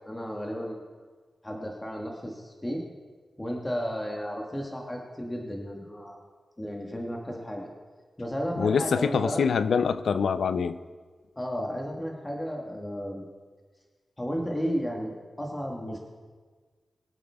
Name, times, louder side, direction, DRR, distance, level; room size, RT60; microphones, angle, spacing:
voice 1, 0.0-0.8 1.4-2.8 3.4-6.2 6.6-7.7 8.2-9.4 11.3-13.2 14.2-16.0, equal, 15° left, 0 dB, 1.6 m, -33 dB
voice 2, 8.6-10.8, left 6 dB, 90° left, 13 dB, 0.5 m, -25 dB
23.0 x 8.7 x 3.5 m, 1.5 s
wide cardioid pair, 110°, 0 cm